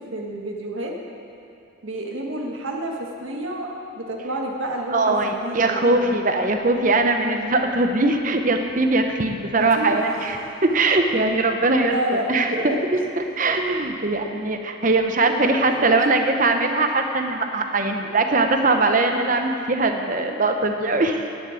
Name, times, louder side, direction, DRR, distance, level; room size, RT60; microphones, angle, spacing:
voice 1, 0.1-0.9 1.8-3.7 4.0-6.1 9.8-10.0 11.8-12.9 15.3-16.0, right 1 dB, 75° right, 0 dB, 1.5 m, -29 dB
voice 2, 4.9-11.9 12.3-12.7 13.2-21.2, right 2 dB, 40° right, 5 dB, 0.8 m, -21 dB
sound 1, 9.5-11.4 11.9-12.0 12.2-13.5, left 1 dB, 25° left, 3.2 m, -43 dB
10.5 x 7.5 x 8.9 m, 2.5 s
head